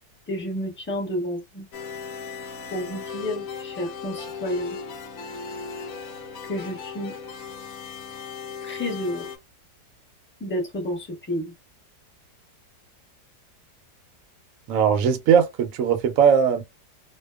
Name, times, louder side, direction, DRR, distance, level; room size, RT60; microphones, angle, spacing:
voice 1, 0.3-1.6 2.7-4.8 6.5-7.2 8.6-9.3 10.4-11.5, equal, 10° left, 0.5 m, -30 dB
sound 1, 1.7-9.4, left 6 dB, 70° left, 0.9 m, -37 dB
voice 2, 14.7-16.6, right 7 dB, 70° right, 0.8 m, -19 dB
2.7 x 2.2 x 2.2 m
omnidirectional pair, 1.9 m